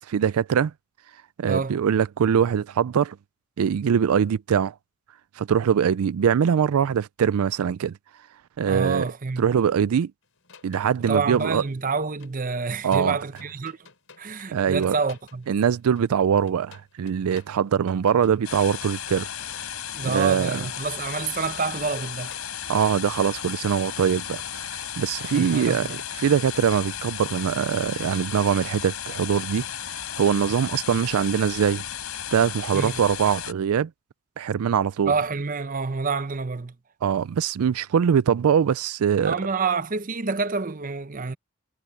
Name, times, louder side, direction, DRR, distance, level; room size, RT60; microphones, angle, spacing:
voice 1, 0.1-0.7 1.4-3.2 3.6-4.7 5.4-8.0 8.6-9.1 9.4-10.1 10.6-11.6 12.8-13.2 14.5-14.9 15.5-19.3 20.0-20.6 22.7-25.9 26.1-31.8 32.3-33.9 34.4-35.1 37.0-39.3, right 7 dB, 85° right, 0.4 m, -22 dB
voice 2, 8.7-9.5 11.1-13.8 14.2-15.5 19.9-22.3 25.3-26.0 32.7-33.0 35.1-36.7 39.2-41.4, right 4 dB, 40° right, 0.8 m, -28 dB
sound 1, 10.2-26.4, left 5 dB, 65° left, 6.4 m, -56 dB
sound 2, 18.4-33.5, left 9 dB, 85° left, 6.4 m, -34 dB
head